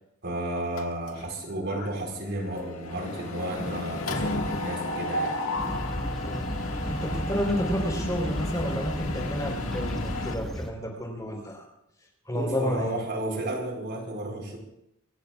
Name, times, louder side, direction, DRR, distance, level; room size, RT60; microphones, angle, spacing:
voice 1, 0.2-5.4 12.3-14.6, right 1 dB, 55° right, 1 dB, 3.8 m, -32 dB
Mechanisms, 0.8-1.4 1.7-10.3, left 2 dB, 75° left, 1.8 m, -33 dB
sound 1, 5.6-10.7, equal, ahead, 1.6 m, -34 dB
voice 2, 6.8-11.7 12.3-13.0, equal, 15° left, 1 dB, 3.9 m, -30 dB
26.5 x 15.0 x 2.4 m, 0.80 s
head